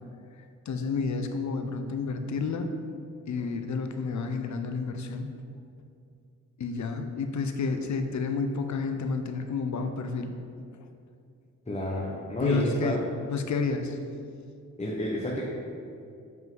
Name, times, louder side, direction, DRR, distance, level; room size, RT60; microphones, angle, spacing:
voice 1, 0.7-2.7 3.3-5.3 6.6-10.3 12.4-14.0, left 4 dB, 60° left, 6 dB, 0.7 m, -30 dB
voice 2, 11.7-12.9 14.8-15.4, equal, 20° left, -5 dB, 1.1 m, -30 dB
7.2 x 5.4 x 3.9 m, 2.4 s
cardioid pair, 80°, 32 cm